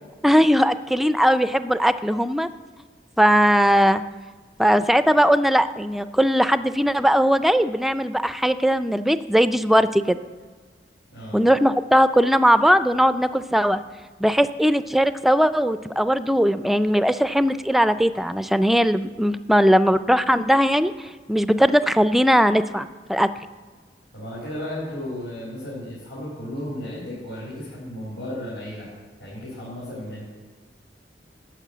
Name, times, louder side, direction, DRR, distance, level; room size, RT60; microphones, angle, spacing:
voice 1, 0.2-2.5 3.2-4.0 4.6-10.2 11.3-13.8 14.2-23.3, equal, ahead, 12 dB, 0.4 m, -19 dB
voice 2, 24.1-28.9 29.2-30.2, left 1 dB, 75° left, -9 dB, 4.6 m, -34 dB
12.5 x 6.7 x 8.3 m, 1.4 s
head